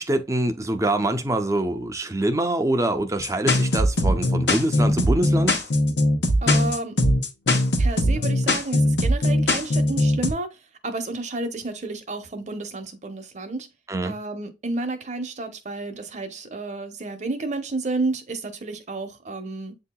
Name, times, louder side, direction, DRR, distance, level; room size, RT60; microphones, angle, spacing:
voice 1, 0.0-5.6 13.9-14.2, right 1 dB, 20° right, 0.5 m, -24 dB
sound 1, 3.2-10.3, left 1 dB, 80° left, 1.0 m, -20 dB
voice 2, 6.4-7.0 7.8-10.5 10.8-13.7 14.0-19.8, right 2 dB, 40° right, 0.8 m, -31 dB
8.1 x 2.8 x 2.2 m
head